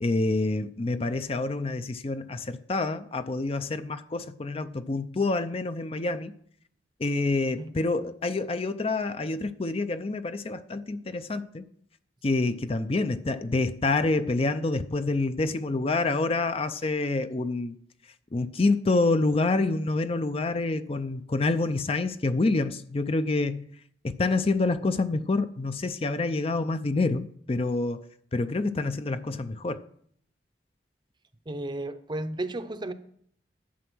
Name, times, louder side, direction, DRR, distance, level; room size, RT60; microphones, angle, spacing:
voice 1, 0.0-6.3 7.0-11.6 12.2-17.8 18.3-23.7 24.0-28.0 28.3-29.8, left 3 dB, 35° left, 0.5 m, -27 dB
voice 2, 7.5-7.9 31.5-32.9, right 1 dB, 25° right, 0.7 m, -34 dB
11.5 x 8.4 x 6.1 m
head